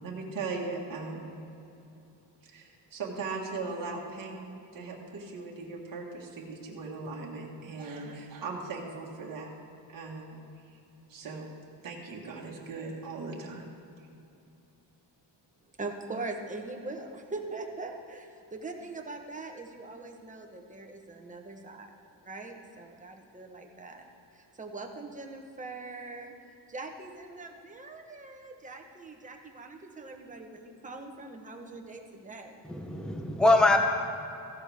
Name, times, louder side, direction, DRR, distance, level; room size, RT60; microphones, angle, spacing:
voice 1, 0.0-1.3 2.4-9.5 9.9-10.4 10.7-10.8 11.1-11.5 11.8-13.7, right 3 dB, 50° right, -2 dB, 1.5 m, -38 dB
voice 2, 15.8-21.9 22.2-24.1 24.3-26.3 26.7-32.6, right 3 dB, 15° right, 2 dB, 1.0 m, -42 dB
voice 3, 32.7-33.8, left 2 dB, ahead, 4 dB, 0.6 m, -23 dB
14.5 x 11.0 x 3.4 m, 2.8 s
wide cardioid pair, 160°, 44 cm